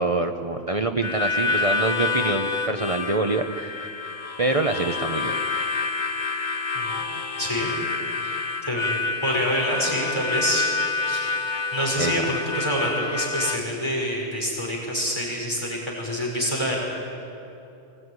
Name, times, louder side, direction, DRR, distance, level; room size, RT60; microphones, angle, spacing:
voice 1, 0.0-3.8 4.4-5.4 12.0-12.1, right 2 dB, 35° right, 6 dB, 0.9 m, -25 dB
Harmonica, 1.0-13.6, left 4 dB, 45° left, 1.2 m, -28 dB
voice 2, 7.4-7.7 8.2-10.7 11.1-16.8, equal, 25° left, -3 dB, 5.6 m, -27 dB
23.5 x 19.5 x 9.7 m, 2.8 s
omnidirectional pair, 1.1 m